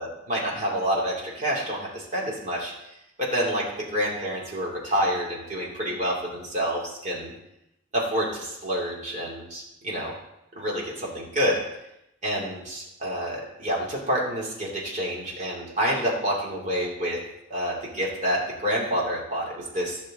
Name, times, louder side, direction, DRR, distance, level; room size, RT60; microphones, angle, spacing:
voice 1, 0.0-2.7 3.2-3.7 3.9-7.3 7.9-10.1 10.5-11.6 12.2-17.2 17.5-20.0, equal, 40° right, -4 dB, 2.8 m, -28 dB
12.5 x 6.5 x 3.8 m, 0.84 s
head